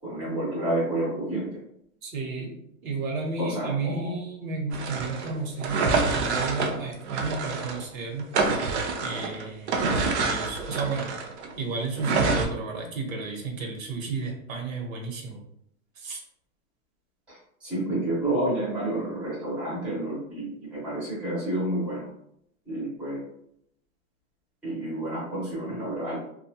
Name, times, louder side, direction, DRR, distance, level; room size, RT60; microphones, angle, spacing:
voice 1, 0.0-1.6 3.4-4.2 17.3-22.1 22.7-23.2 24.6-26.2, right 1 dB, 5° right, -10 dB, 0.6 m, -30 dB
voice 2, 2.0-2.6 2.8-8.3 9.0-11.1 11.5-15.4 16.0-16.2, right 4 dB, 70° right, 1 dB, 1.0 m, -32 dB
sound 1, 4.7-7.8 8.2-11.5 12.0-12.5, right 4 dB, 50° right, 0.5 m, -27 dB
2.6 x 2.3 x 2.7 m, 0.73 s
supercardioid pair, 170°, 42 cm